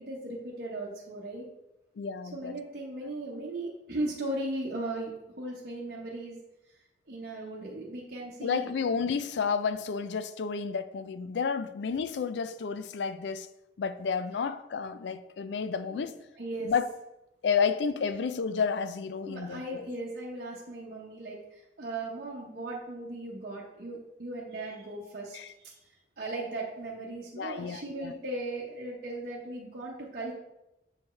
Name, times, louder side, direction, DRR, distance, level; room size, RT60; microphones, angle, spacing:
voice 1, 0.0-1.4 2.3-6.4 7.1-8.9 15.9-16.1 16.4-16.7 19.3-25.7 26.2-30.3, right 2 dB, 55° right, 0.9 m, -37 dB
voice 2, 2.0-2.5 8.4-13.5 13.8-16.2 16.6-16.9 17.4-20.0 25.3-25.5 27.4-28.1, left 6 dB, 70° left, 0.4 m, -31 dB
7.1 x 4.5 x 3.2 m
head